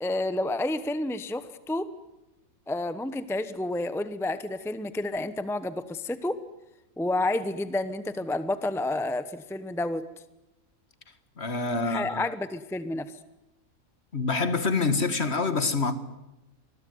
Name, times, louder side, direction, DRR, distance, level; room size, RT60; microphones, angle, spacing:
voice 1, 0.0-1.9 2.7-6.4 7.0-10.1 11.8-13.1, left 2 dB, ahead, 0.9 m, -30 dB
voice 2, 11.4-12.2 14.1-15.9, left 4 dB, 45° left, 2.0 m, -26 dB
26.0 x 21.0 x 9.5 m
omnidirectional pair, 1.5 m